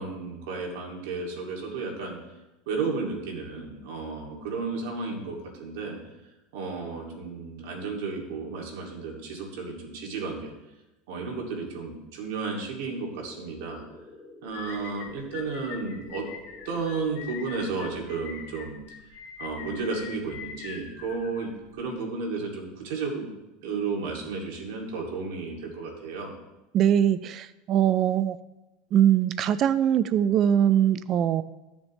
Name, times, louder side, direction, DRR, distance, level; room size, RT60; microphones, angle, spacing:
voice 1, 0.0-2.2 2.7-6.0 6.5-10.5 11.1-13.8 14.4-16.2 16.6-18.8 19.4-23.3 23.6-26.3, right 4 dB, 70° right, -1 dB, 2.6 m, -33 dB
sound 1, 13.0-18.0, left 2 dB, 25° left, 1.7 m, -49 dB
sound 2, 14.5-21.9, left 7 dB, 65° left, 1.9 m, -43 dB
voice 2, 26.7-28.4 28.9-31.4, right 10 dB, 40° right, 15 dB, 0.4 m, -22 dB
14.0 x 7.2 x 3.3 m, 1.0 s
supercardioid pair, 135°, 0 cm